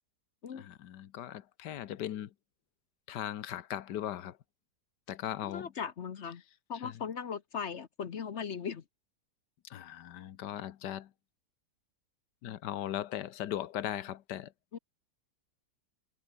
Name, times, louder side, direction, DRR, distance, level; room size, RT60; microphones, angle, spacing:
voice 1, 0.5-2.3 3.1-4.4 5.1-5.7 6.8-6.9 9.6-11.1 12.4-14.5, left 11 dB, 85° left, 1.5 m, -38 dB
voice 2, 5.5-6.4 6.7-8.8 14.7-14.8, left 7 dB, 50° left, 1.1 m, -38 dB
omnidirectional pair, 1.8 m